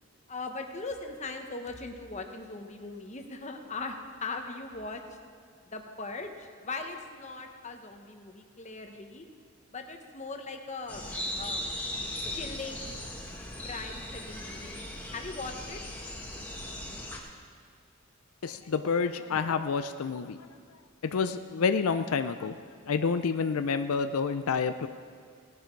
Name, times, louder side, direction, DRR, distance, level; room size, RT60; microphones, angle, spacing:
voice 1, 0.3-3.9 4.2-5.0 5.6-9.2 9.7-11.0 11.4-11.6 12.3-12.9 13.6-15.8, left 3 dB, 35° left, 4 dB, 1.1 m, -39 dB
sound 1, 10.9-17.2, left 1 dB, 10° left, 1.6 m, -38 dB
voice 2, 18.4-20.5 21.0-22.6 22.9-24.9, left 5 dB, 85° left, 9 dB, 0.5 m, -28 dB
17.5 x 10.5 x 4.6 m, 2.2 s
head